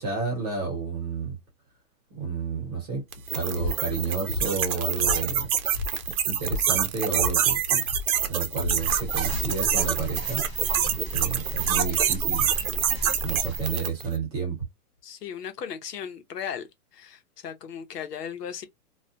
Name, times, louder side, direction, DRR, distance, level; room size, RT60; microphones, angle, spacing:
voice 1, 0.0-1.4 2.1-3.0 3.3-5.5 6.3-7.8 8.3-10.4 11.1-12.5 13.2-14.6, right 5 dB, 25° right, 1.0 m, -31 dB
sound 1, 3.1-14.1, right 9 dB, 60° right, 0.7 m, -26 dB
sound 2, 3.5-9.9, left 3 dB, 50° left, 0.6 m, -35 dB
sound 3, 8.6-13.8, equal, 10° left, 0.9 m, -35 dB
voice 2, 15.0-16.7 16.9-18.6, left 8 dB, 80° left, 0.8 m, -36 dB
2.4 x 2.1 x 2.6 m
hypercardioid pair, 170°, 47 cm